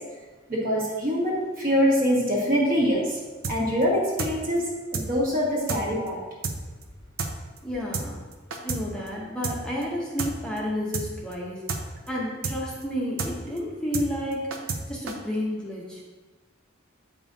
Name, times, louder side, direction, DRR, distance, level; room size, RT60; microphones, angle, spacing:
voice 1, 0.5-3.2 3.5-6.2, equal, 45° right, -4 dB, 1.7 m, -24 dB
sound 1, 3.4-3.6 3.8-3.9 4.2-4.3 4.6-4.7 4.9-5.1 5.3-5.4 5.7-5.8 6.1-6.2 6.4-6.6 6.8-6.9 7.2-7.3 7.6-7.7 7.9-8.1 8.3-8.8 9.1-9.2 9.4-9.6 9.8-9.9 10.2-10.3 10.6-10.7 10.9-11.1 11.3-11.4 11.7-11.8 12.1-12.2 12.4-12.6 12.8-12.9 13.2-13.3 13.6-13.7 13.9-14.1 14.3-14.8 15.1-15.2, right 4 dB, 75° right, 0.7 m, -30 dB
voice 2, 7.6-8.2 8.6-11.8 12.1-16.0, equal, 5° left, -5 dB, 0.8 m, -31 dB
8.3 x 5.4 x 2.7 m, 1.3 s
head